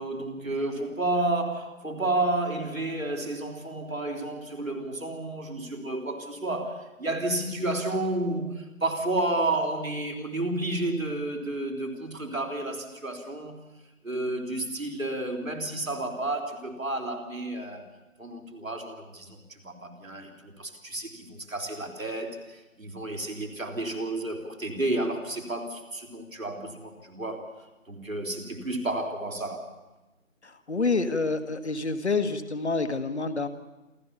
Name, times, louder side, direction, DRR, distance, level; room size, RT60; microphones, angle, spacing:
voice 1, 0.0-13.6 14.0-17.9 18.2-27.5 27.9-29.7, right 2 dB, 80° right, 2 dB, 3.9 m, -31 dB
voice 2, 30.4-33.5, left 3 dB, 55° left, 10 dB, 1.7 m, -28 dB
28.0 x 13.0 x 7.0 m, 1.1 s
figure-of-eight pair, 155°, 40 cm